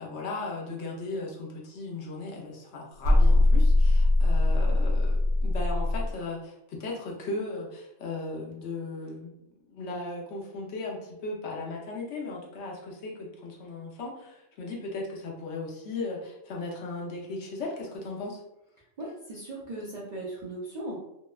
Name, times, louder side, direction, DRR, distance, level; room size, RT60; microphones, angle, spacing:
voice 1, 0.0-9.3 9.6-18.4, left 3 dB, 65° left, -2 dB, 0.8 m, -37 dB
sound 1, 3.0-6.1, left 2 dB, 75° right, 1.1 m, -21 dB
voice 2, 19.0-21.0, right 1 dB, 60° right, -6 dB, 0.4 m, -38 dB
2.7 x 2.1 x 2.2 m, 0.85 s
omnidirectional pair, 1.3 m